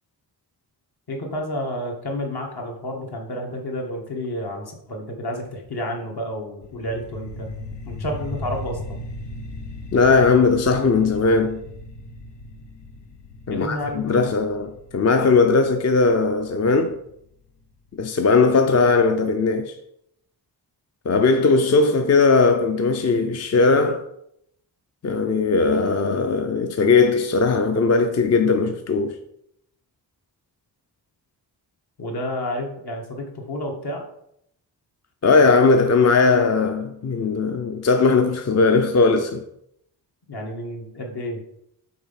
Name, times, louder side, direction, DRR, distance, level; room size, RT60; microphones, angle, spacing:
voice 1, 1.1-7.5 7.8-9.0 13.5-14.3 32.0-34.1 40.3-41.4, left 1 dB, 65° left, 1.7 m, -30 dB
sound 1, 6.6-17.6, left 2 dB, 90° left, 1.0 m, -37 dB
voice 2, 9.9-11.6 13.5-17.0 18.0-19.8 21.1-24.1 25.0-29.2 35.2-39.4, left 4 dB, 40° left, 0.5 m, -18 dB
6.0 x 4.2 x 5.7 m
wide cardioid pair, 160°, 41 cm